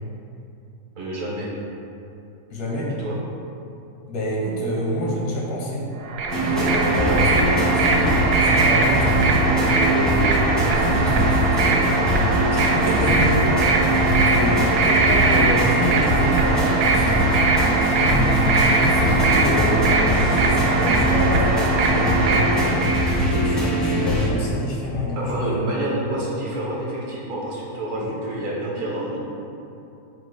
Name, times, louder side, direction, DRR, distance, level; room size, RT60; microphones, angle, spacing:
voice 1, 1.0-1.5 3.0-3.1 7.0-7.3 12.7-13.4 14.5-14.8 25.2-29.2, right 1 dB, 60° right, -4 dB, 1.1 m, -28 dB
voice 2, 2.5-2.9 4.1-5.9 6.3-7.3 7.7-11.8 12.5-13.7 14.2-14.6 14.9-17.5 17.8-20.0 20.4-22.8 23.2-25.7 26.2-26.4 27.9-28.1, equal, 85° left, -3 dB, 1.4 m, -27 dB
sound 1, 6.0-23.1, right 3 dB, 80° right, 1.1 m, -21 dB
sound 2, 6.3-24.3, right 1 dB, ahead, 0.4 m, -22 dB
sound 3, 18.6-22.6, equal, 70° left, 0.7 m, -35 dB
4.3 x 2.4 x 4.5 m, 2.8 s
omnidirectional pair, 1.7 m